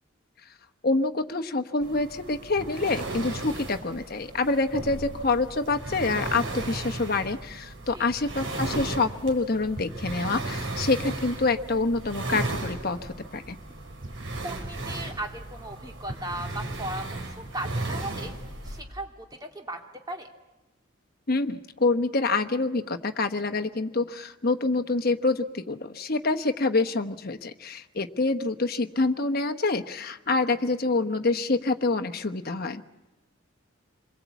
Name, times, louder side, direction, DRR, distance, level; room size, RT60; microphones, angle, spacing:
voice 1, 0.8-13.6 21.3-32.8, left 3 dB, 45° left, 7 dB, 1.1 m, -26 dB
sound 1, 1.8-18.8, right 2 dB, 75° right, 5.4 m, -35 dB
voice 2, 14.4-18.3 18.6-19.8 20.1-20.3, right 1 dB, 20° right, 2 dB, 2.3 m, -37 dB
27.0 x 22.5 x 8.4 m, 1.1 s
head